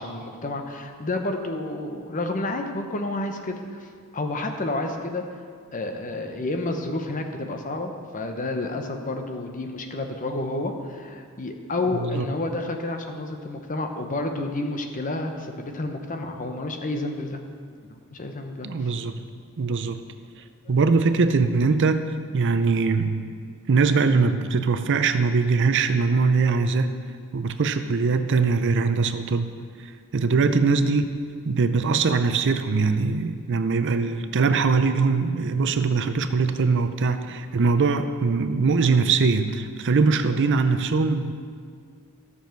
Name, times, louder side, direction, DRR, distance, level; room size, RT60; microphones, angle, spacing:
voice 1, 0.0-3.9 4.1-5.2 5.7-17.4 18.1-18.9, left 2 dB, 35° left, 5 dB, 0.8 m, -30 dB
voice 2, 18.6-19.2 19.6-20.0 20.7-22.0 22.3-23.3 23.7-27.0 27.3-29.5 30.1-41.3, right 4 dB, 55° right, 9 dB, 0.5 m, -22 dB
13.0 x 7.1 x 4.5 m, 2.2 s
head